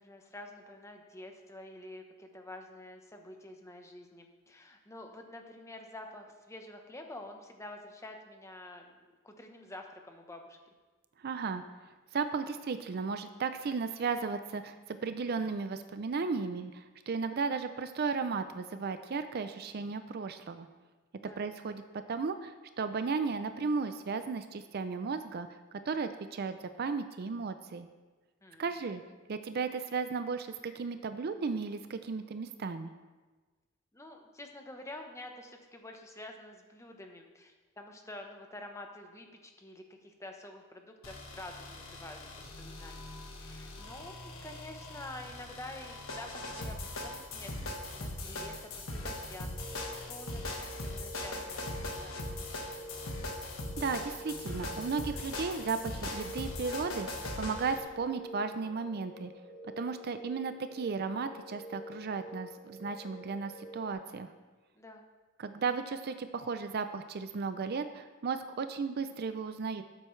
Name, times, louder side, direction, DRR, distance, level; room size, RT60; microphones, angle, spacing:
voice 1, 0.0-10.6 21.2-21.4 28.4-28.7 33.9-44.2 44.4-49.5 50.1-51.6 51.9-52.9 64.7-65.0, left 1 dB, 15° left, 3 dB, 0.9 m, -48 dB
voice 2, 11.2-11.6 12.1-20.7 21.4-21.8 22.1-25.5 25.9-27.9 28.6-29.0 29.3-32.9 53.8-59.3 59.8-64.3 65.4-69.8, right 5 dB, 50° right, 10 dB, 0.4 m, -35 dB
sound 1, 41.0-57.8, left 2 dB, 75° left, 1.5 m, -40 dB
Alarm, 42.7-43.2 43.7-44.2 44.7-45.2 45.7-46.2 46.7-47.2, left 4 dB, 85° right, 2.8 m, -55 dB
sound 2, 49.4-63.9, equal, 35° left, 2.2 m, -48 dB
13.0 x 7.5 x 3.2 m, 1.3 s
head